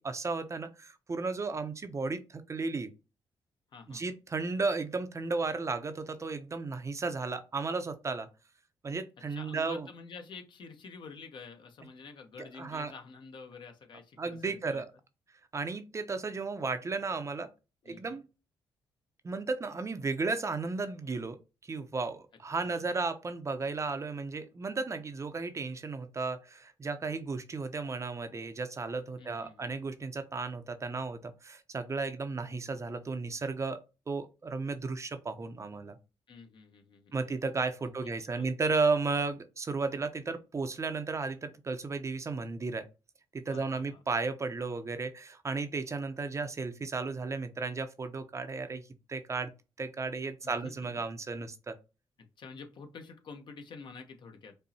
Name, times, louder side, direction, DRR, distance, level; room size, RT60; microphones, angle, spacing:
voice 1, 0.0-2.9 3.9-8.3 8.8-9.9 12.4-12.9 14.2-14.9 15.5-17.5 17.9-18.2 19.2-21.4 21.6-33.8 34.1-36.0 37.1-42.9 43.3-49.5 49.8-51.8, right 4 dB, 30° right, 0.5 m, -34 dB
voice 2, 3.7-4.0 9.3-14.8 17.8-18.2 22.6-22.9 29.2-29.7 36.3-37.3 37.8-38.5 43.5-44.0 50.4-50.9 52.4-54.5, left 4 dB, 60° left, 0.8 m, -48 dB
5.3 x 2.0 x 2.7 m
cardioid pair, 75°, 9 cm